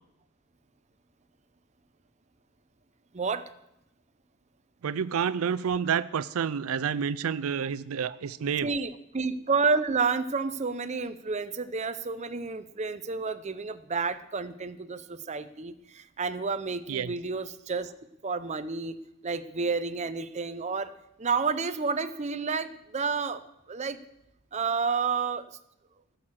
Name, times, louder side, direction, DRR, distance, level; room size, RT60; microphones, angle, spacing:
voice 1, 3.1-3.4 8.6-17.9 18.2-19.0 19.2-20.9 21.2-23.4 23.7-24.0 24.5-25.5, right 4 dB, 35° right, 11 dB, 0.6 m, -30 dB
voice 2, 4.8-8.7 16.9-17.1, right 7 dB, 80° right, 17 dB, 0.4 m, -29 dB
17.0 x 6.5 x 7.4 m, 0.84 s
head